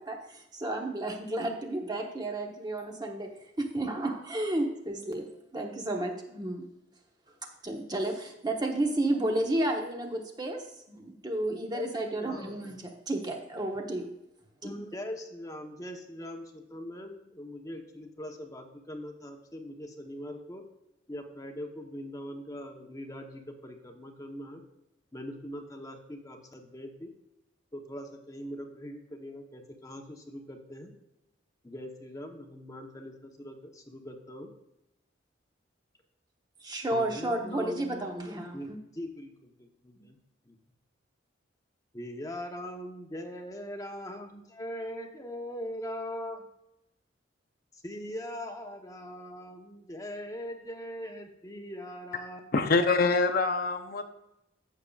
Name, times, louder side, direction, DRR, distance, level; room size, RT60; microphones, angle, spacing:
voice 1, 0.0-3.3 3.6-6.7 7.6-14.1 14.6-14.7 36.6-38.6, right 1 dB, 20° right, 2 dB, 1.1 m, -32 dB
voice 2, 11.7-12.6 14.6-20.6 21.1-24.6 25.1-27.1 27.7-30.9 31.6-34.5 36.9-40.2 40.5-40.6 41.9-46.4 47.7-52.8, equal, 20° left, 3 dB, 0.9 m, -41 dB
voice 3, 52.5-54.1, left 3 dB, 50° left, 6 dB, 0.6 m, -25 dB
14.0 x 6.7 x 2.4 m, 0.87 s
head